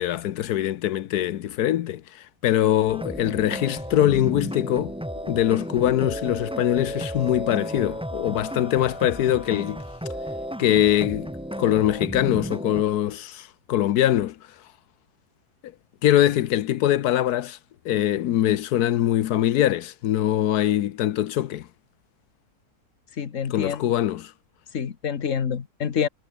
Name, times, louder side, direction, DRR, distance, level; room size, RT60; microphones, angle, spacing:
voice 1, 0.0-4.9 5.2-9.8 10.6-11.3 11.6-14.4 16.0-17.6 17.8-21.7 23.5-24.3, left 12 dB, 90° left, 1.3 m, -23 dB
sound 1, 2.9-12.8, equal, 5° right, 3.3 m, -33 dB
voice 2, 23.2-23.8 24.7-26.1, left 7 dB, 55° left, 1.7 m, -27 dB
omnidirectional pair, 1.6 m